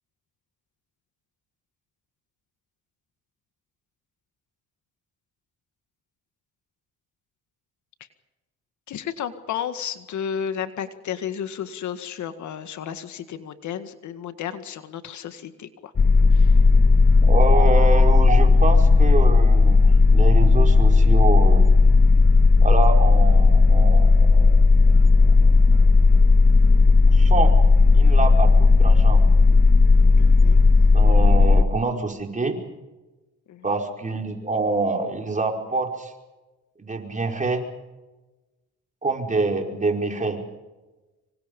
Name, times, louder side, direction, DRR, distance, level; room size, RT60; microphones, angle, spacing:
voice 1, 8.9-15.9 16.3-16.6 30.2-30.6 33.5-33.6, left 8 dB, 70° left, 10 dB, 1.9 m, -33 dB
sound 1, 16.0-31.6, left 3 dB, 30° left, 0.9 m, -14 dB
voice 2, 17.2-21.7 22.6-25.4 25.7-25.8 27.1-27.5 27.9-29.2 30.9-32.6 33.6-36.1 36.8-37.7 39.0-40.4, right 3 dB, 25° right, 2 dB, 5.1 m, -26 dB
26.5 x 24.5 x 5.4 m, 1.1 s
cardioid pair, 90°, 30 cm